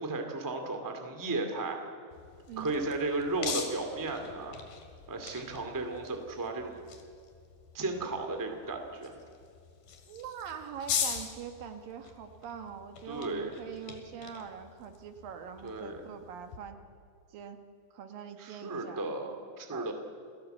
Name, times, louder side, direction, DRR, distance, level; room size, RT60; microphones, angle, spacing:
voice 1, 0.0-1.8 2.6-4.6 5.1-6.8 7.7-9.1 13.1-13.6 15.6-16.0 18.4-19.9, right 2 dB, 5° right, 4 dB, 1.5 m, -34 dB
sound 1, 2.1-16.6, left 7 dB, 70° left, 3.9 m, -42 dB
voice 2, 10.1-16.8 17.3-17.6 17.9-19.1 19.7-19.9, right 7 dB, 70° right, 7 dB, 2.8 m, -43 dB
28.5 x 17.0 x 8.0 m, 2.3 s
omnidirectional pair, 4.4 m